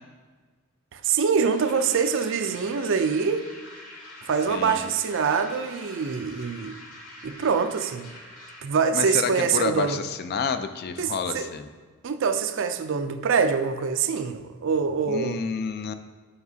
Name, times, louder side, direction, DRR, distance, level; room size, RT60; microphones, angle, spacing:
voice 1, 0.9-3.4 4.3-6.8 7.2-8.1 8.6-10.0 11.0-11.5 12.0-15.4, right 6 dB, 60° right, 0.4 m, -24 dB
sound 1, 1.1-8.7, left 1 dB, 70° left, 1.4 m, -45 dB
voice 2, 4.5-4.8 8.9-11.7 15.1-15.9, left 5 dB, 45° left, 0.4 m, -29 dB
9.4 x 5.8 x 2.7 m
head